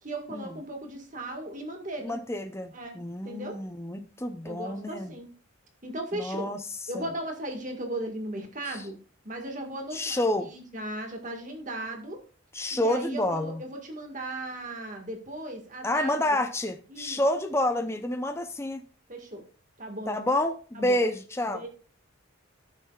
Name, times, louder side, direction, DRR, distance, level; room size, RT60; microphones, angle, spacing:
voice 1, 0.0-2.2 2.7-3.0 3.2-3.6 4.4-5.3 5.8-6.5 6.9-9.0 9.2-10.2 10.5-12.2 12.7-16.1 16.9-17.2 19.1-19.4 19.8-20.2 20.7-21.0 21.5-21.7, right 1 dB, 40° right, 3 dB, 1.8 m, -37 dB
voice 2, 2.0-5.1 6.1-6.6 6.9-7.0 8.7-8.8 9.9-10.5 12.5-13.6 15.8-18.8 20.1-21.7, left 1 dB, 15° left, 8 dB, 0.6 m, -29 dB
16.5 x 6.5 x 2.4 m, 0.39 s
head